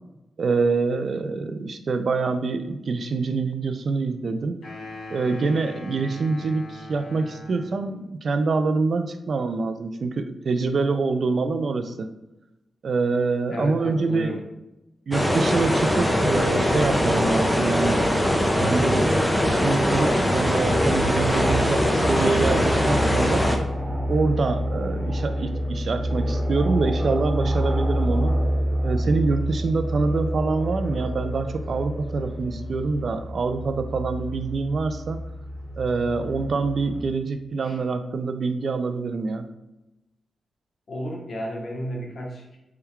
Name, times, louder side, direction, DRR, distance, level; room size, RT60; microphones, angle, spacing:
voice 1, 0.4-4.6 5.1-12.1 12.8-14.3 15.1-19.1 19.4-23.5 24.1-28.4 28.8-35.3 35.8-39.5, right 4 dB, 60° right, 9 dB, 0.3 m, -25 dB
sound 1, 4.6-8.0, left 2 dB, 80° left, 1.4 m, -41 dB
voice 2, 13.5-14.4 37.6-37.8 40.9-42.6, equal, 60° left, -1 dB, 0.9 m, -33 dB
sound 2, 15.1-23.6, equal, 5° left, 0.5 m, -21 dB
Light Aircraft, 20.7-37.0, equal, 30° right, 0.9 m, -28 dB
3.6 x 2.2 x 4.3 m, 0.94 s
cardioid pair, 80°, 0 cm